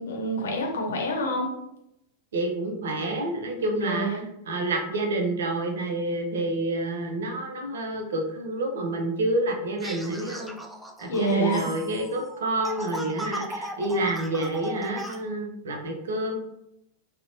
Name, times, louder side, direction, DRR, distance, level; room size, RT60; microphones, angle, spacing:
voice 1, 0.0-1.5 3.7-4.2 11.1-11.7, right 1 dB, 65° left, 0 dB, 0.7 m, -27 dB
voice 2, 2.3-10.5 11.0-16.4, right 1 dB, 65° right, 2 dB, 0.5 m, -28 dB
sound 1, 9.8-15.2, equal, ahead, 0.3 m, -37 dB
3.9 x 2.1 x 2.6 m, 0.81 s
figure-of-eight pair, 90°, 0 cm